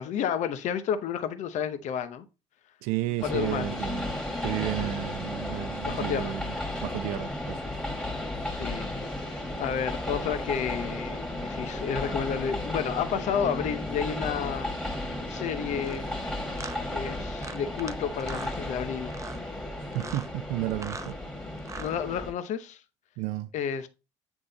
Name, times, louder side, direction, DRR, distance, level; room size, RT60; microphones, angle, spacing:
voice 1, 0.0-2.3 3.2-3.9 5.8-6.4 8.5-8.9 9.3-16.1 16.9-19.2 21.8-22.8 23.5-23.9, left 8 dB, 65° left, 0.8 m, -31 dB
voice 2, 2.8-6.5 6.8-7.6 19.9-21.2 23.2-23.5, right 15 dB, 80° right, 0.5 m, -32 dB
Train, 3.2-22.3, left 1 dB, 5° left, 1.9 m, -34 dB
sound 1, 15.8-16.0 16.6-16.8 17.4-17.9 18.2-18.6 19.1-19.4 19.9-20.3 20.7-21.1 21.6-21.9, right 4 dB, 25° right, 0.6 m, -41 dB
8.0 x 3.7 x 4.0 m
supercardioid pair, 70°, 13 cm